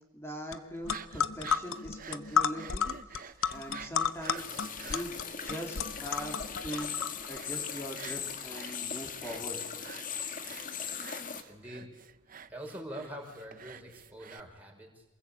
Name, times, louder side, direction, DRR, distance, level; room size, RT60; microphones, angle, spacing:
voice 1, 0.1-2.9 3.2-4.4 4.8-5.1 5.4-6.9 7.3-9.6, equal, 10° left, 2 dB, 3.6 m, -41 dB
sound 1, 0.5-0.6 0.8-7.4, left 6 dB, 80° left, 1.0 m, -32 dB
sound 2, 0.7-14.4, right 7 dB, 40° right, 0.8 m, -50 dB
sound 3, 4.4-11.4, left 7 dB, 40° left, 1.8 m, -39 dB
voice 2, 11.5-11.9 12.5-15.0, equal, 10° right, -1 dB, 5.5 m, -44 dB
27.5 x 21.0 x 8.7 m, 1.0 s
head